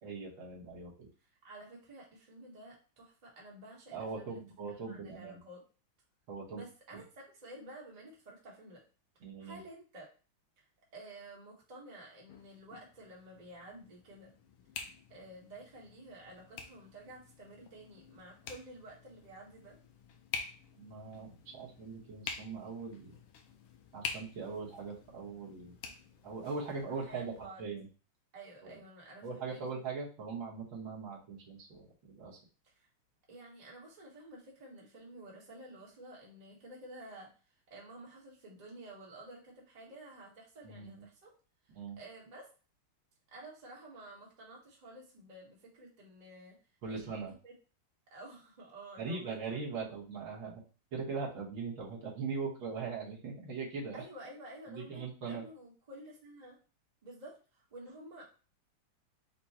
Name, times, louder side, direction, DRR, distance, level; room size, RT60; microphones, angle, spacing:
voice 1, 0.0-1.1 3.9-5.4 6.3-6.6 9.2-9.6 20.8-23.1 23.9-25.7 26.2-27.9 28.6-28.8 29.2-32.4 40.6-41.1 41.7-42.0 46.8-47.3 49.0-50.6 50.9-54.0 54.7-55.4, right 4 dB, 70° right, -4 dB, 2.1 m, -40 dB
voice 2, 1.2-4.4 4.9-5.6 6.5-8.8 9.4-10.1 10.6-10.7 10.9-14.3 15.1-19.8 26.9-27.6 28.3-29.6 32.6-32.9 33.3-37.3 37.7-41.3 42.0-42.5 43.3-46.6 46.9-47.5 48.1-50.0 53.9-56.6 57.0-58.3, right 1 dB, 25° right, -3 dB, 1.2 m, -51 dB
sound 1, 12.3-27.5, left 6 dB, 80° left, 1.5 m, -48 dB
5.1 x 2.3 x 4.2 m, 0.35 s
omnidirectional pair, 2.3 m